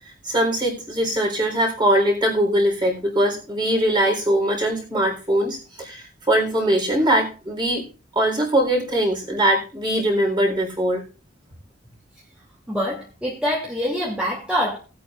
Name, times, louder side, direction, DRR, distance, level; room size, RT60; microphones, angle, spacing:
voice 1, 0.2-7.8 8.1-11.0, right 1 dB, 20° right, 0 dB, 3.9 m, -21 dB
voice 2, 12.7-14.8, equal, 5° right, -5 dB, 2.5 m, -25 dB
19.5 x 8.6 x 2.5 m, 0.34 s
head